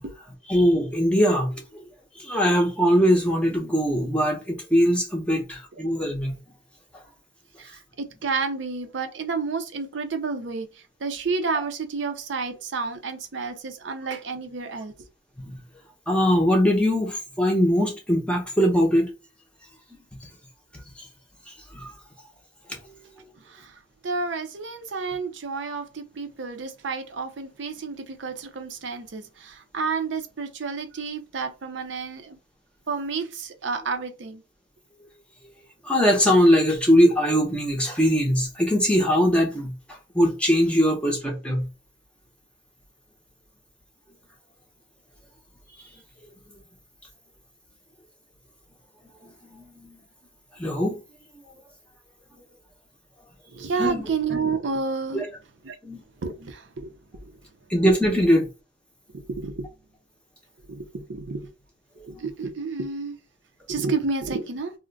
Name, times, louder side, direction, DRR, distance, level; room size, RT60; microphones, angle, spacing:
voice 1, 0.5-1.6 2.2-6.3 15.5-15.6 16.1-19.1 21.0-21.1 21.7-21.9 35.4-35.5 35.8-39.7 40.1-41.7 49.5-50.0 50.6-51.0 53.8-54.0 55.1-55.3 55.8-56.0 57.7-58.5, equal, 5° left, 0.6 m, -21 dB
voice 2, 7.6-10.7 11.0-14.9 23.5-23.8 24.0-32.4 32.9-34.4 53.5-55.2 55.6-55.8 56.2-57.4 58.2-58.3 59.1-59.7 60.7-61.5 62.1-63.2 63.7-64.7, right 4 dB, 70° right, 0.5 m, -30 dB
2.4 x 2.1 x 3.8 m
head